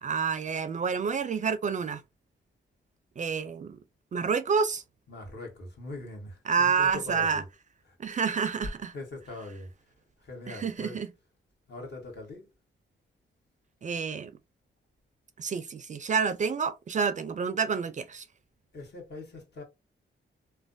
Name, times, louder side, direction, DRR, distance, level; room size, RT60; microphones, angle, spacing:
voice 1, 0.0-2.0 3.2-3.8 4.1-4.8 6.5-7.4 8.0-8.9 10.5-11.1 13.8-14.3 15.4-18.2, right 6 dB, 40° right, 0.4 m, -28 dB
voice 2, 5.1-7.4 7.9-8.0 8.9-9.7 10.2-11.0 11.7-12.5 18.7-19.6, left 2 dB, 60° left, 1.5 m, -42 dB
3.1 x 2.1 x 2.5 m
cardioid pair, 80°, 20 cm